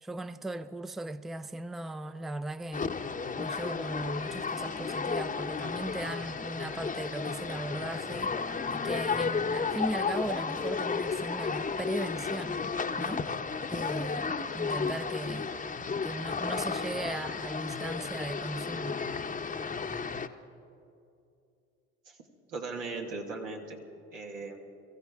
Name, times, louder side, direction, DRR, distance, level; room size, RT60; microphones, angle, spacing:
voice 1, 0.0-2.9 3.4-8.4 8.7-12.6 13.0-13.3 13.7-15.5 16.0-19.0, right 1 dB, ahead, 0.4 m, -37 dB
sound 1, 2.7-20.3, left 5 dB, 20° left, 0.8 m, -33 dB
voice 2, 22.5-23.8 24.1-24.6, right 3 dB, 90° right, 1.8 m, -38 dB
23.0 x 15.0 x 3.6 m
hypercardioid pair, 60°, 38 cm